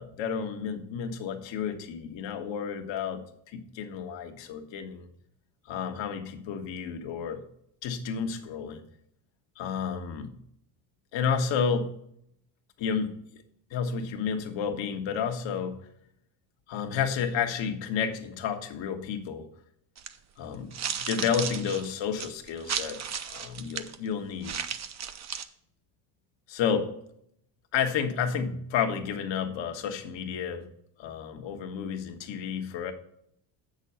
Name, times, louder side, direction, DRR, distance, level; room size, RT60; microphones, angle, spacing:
voice 1, 0.0-3.2 3.5-5.1 5.7-7.4 7.8-8.8 9.6-10.3 11.1-11.9 12.8-13.1 13.7-15.8 16.7-19.5 20.4-23.0 23.3-24.6 26.5-26.9 27.7-30.7 31.0-32.9, left 7 dB, 65° left, 6 dB, 1.4 m, -31 dB
sound 1, 20.0-20.1 20.7-24.0 24.4-25.5, right 8 dB, 35° right, 0.7 m, -34 dB
7.5 x 6.4 x 5.5 m, 0.71 s
supercardioid pair, 90°, 48 cm